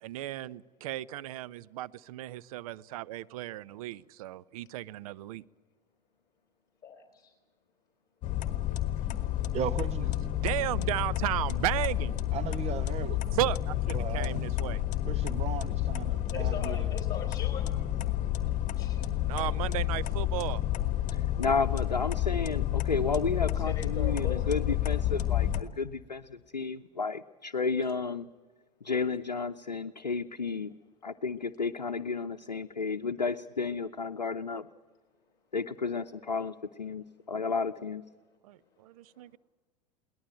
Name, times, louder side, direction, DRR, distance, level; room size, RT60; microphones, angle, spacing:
voice 1, 0.0-5.4 10.4-12.2 13.3-14.8 19.3-20.6 38.4-39.4, right 15 dB, 60° right, 18 dB, 0.7 m, -34 dB
voice 2, 6.8-7.3 16.3-17.7 18.7-19.1 19.4-19.5 23.4-24.7, left 5 dB, 15° left, 4 dB, 3.8 m, -41 dB
sound 1, 8.2-25.6, left 13 dB, 35° left, 1.6 m, -30 dB
voice 3, 9.5-10.1 12.3-13.2 13.9-14.4 15.1-16.9, right 9 dB, 30° right, 14 dB, 1.2 m, -37 dB
voice 4, 21.1-28.3 28.8-30.7 31.0-34.7 35.5-38.0, left 4 dB, 85° left, 7 dB, 0.7 m, -32 dB
22.5 x 18.5 x 9.0 m, 1.3 s
figure-of-eight pair, 85°, 21 cm